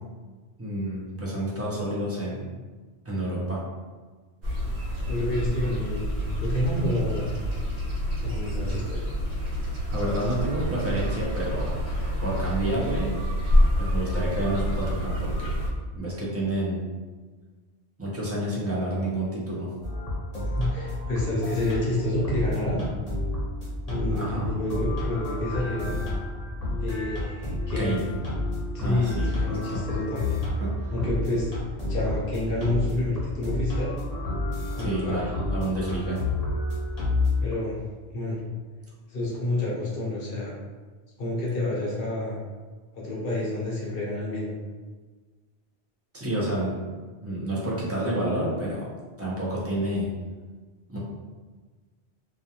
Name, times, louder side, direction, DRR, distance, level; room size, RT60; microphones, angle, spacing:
voice 1, 0.6-2.5 3.1-3.6 9.9-11.8 12.2-13.2 13.8-15.6 15.9-16.8 18.0-19.7 24.1-24.4 27.8-28.0 28.8-29.8 30.6-30.7 34.8-36.2 46.1-46.7 47.2-48.9 49.2-50.1 50.9-51.0, right 1 dB, 20° right, -6 dB, 0.4 m, -29 dB
sound 1, 4.4-15.7, equal, 85° right, 0.9 m, -27 dB
voice 2, 5.1-7.3 8.2-9.0 20.4-22.8 23.9-26.2 26.8-28.0 28.7-30.4 30.9-31.5 31.9-33.9 34.7-35.3 37.4-37.8 38.1-38.4 39.1-40.6 41.2-42.4 42.9-44.5, left 1 dB, 60° left, -4 dB, 0.8 m, -29 dB
sound 2, 19.8-37.5, left 2 dB, 40° left, 0.8 m, -30 dB
2.3 x 2.2 x 2.8 m, 1.4 s
omnidirectional pair, 1.1 m